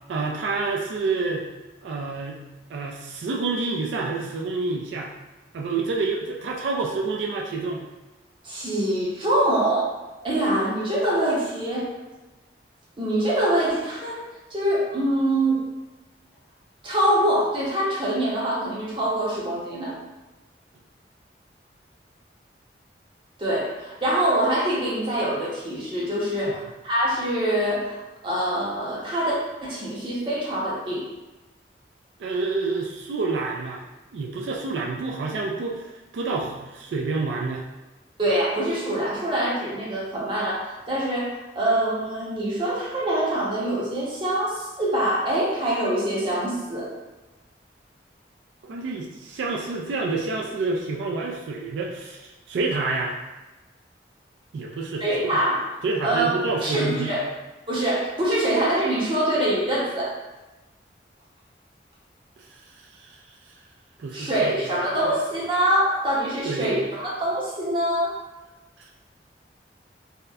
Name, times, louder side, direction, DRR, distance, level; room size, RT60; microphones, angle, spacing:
voice 1, 0.1-1.5 1.8-2.4 2.7-5.1 5.5-7.8 26.5-26.6 32.2-33.8 34.1-35.9 36.1-37.6 48.6-53.1 54.5-55.4 55.8-57.1 63.1-63.2 64.0-64.5 66.4-66.7, right 3 dB, 90° right, 0 dB, 0.3 m, -28 dB
voice 2, 8.4-10.0 10.2-11.9 13.0-14.2 14.5-15.6 16.8-19.9 23.4-28.0 28.2-29.4 29.6-31.0 38.2-46.9 55.0-55.6 56.0-57.3 57.7-60.1 64.1-68.2, right 1 dB, 30° right, -6 dB, 0.6 m, -24 dB
2.8 x 2.0 x 2.3 m, 1.1 s
head